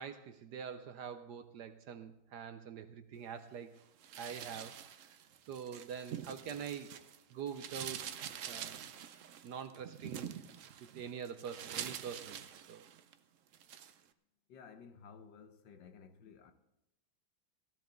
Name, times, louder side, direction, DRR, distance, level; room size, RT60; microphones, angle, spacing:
voice 1, 0.0-3.7 4.2-4.8 5.5-7.0 7.3-8.9 9.4-10.3 10.8-12.4 12.7-12.9, right 7 dB, 65° right, 1.1 m, -45 dB
sound 1, 4.0-7.2 7.5-13.1 13.5-13.9, right 9 dB, 90° right, 0.6 m, -46 dB
voice 2, 14.5-16.5, left 6 dB, 70° left, 1.5 m, -55 dB
16.5 x 13.0 x 3.8 m
omnidirectional pair, 2.2 m